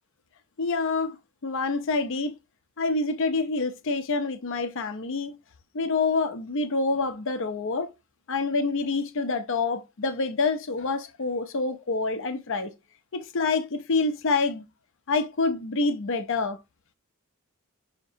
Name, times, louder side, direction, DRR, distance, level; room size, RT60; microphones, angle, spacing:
voice 1, 0.6-1.2 1.4-2.3 2.8-5.4 5.7-7.9 8.3-12.7 13.1-14.6 15.1-16.6, left 3 dB, 60° left, 0.6 m, -27 dB
5.2 x 2.8 x 2.7 m
head